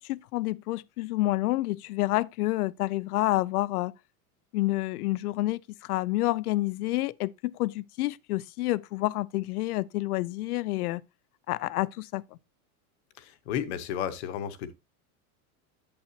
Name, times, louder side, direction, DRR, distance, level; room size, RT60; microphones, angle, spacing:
voice 1, 0.0-3.9 4.5-11.0 11.5-12.2, left 18 dB, 80° left, 0.6 m, -29 dB
voice 2, 13.2-14.7, left 9 dB, 45° left, 0.9 m, -33 dB
8.6 x 7.8 x 2.9 m
supercardioid pair, 175°, 45 cm